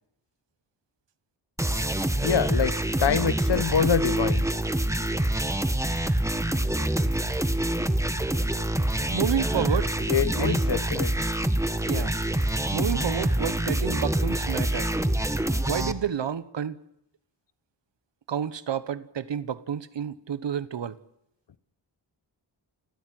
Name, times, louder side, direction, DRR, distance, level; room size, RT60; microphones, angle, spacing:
sound 1, 1.6-15.9, right 1 dB, 5° right, 1.3 m, -26 dB
voice 1, 2.2-4.5 10.1-11.1 11.9-12.1, left 7 dB, 65° left, 1.1 m, -25 dB
voice 2, 9.1-9.9 10.4-10.6 11.9-12.1 12.7-14.9 15.6-16.8 18.3-21.0, right 8 dB, 75° right, 1.2 m, -30 dB
29.5 x 14.5 x 7.8 m
wide cardioid pair, 110°, 44 cm